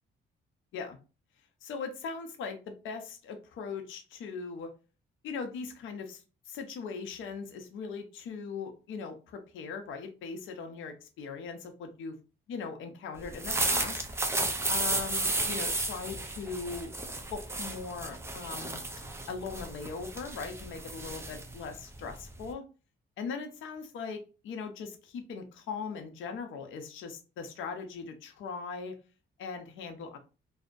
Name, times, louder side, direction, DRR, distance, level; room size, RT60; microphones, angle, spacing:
voice 1, 1.6-4.7 5.2-12.1 12.5-14.1 14.7-16.9 17.3-18.8 19.3-22.6 23.2-28.9 29.4-30.2, left 5 dB, 75° left, 6 dB, 0.6 m, -40 dB
sound 1, 13.2-22.5, right 2 dB, 15° right, 0.4 m, -33 dB
2.6 x 2.0 x 2.4 m, 0.33 s
cardioid pair, 90°, 20 cm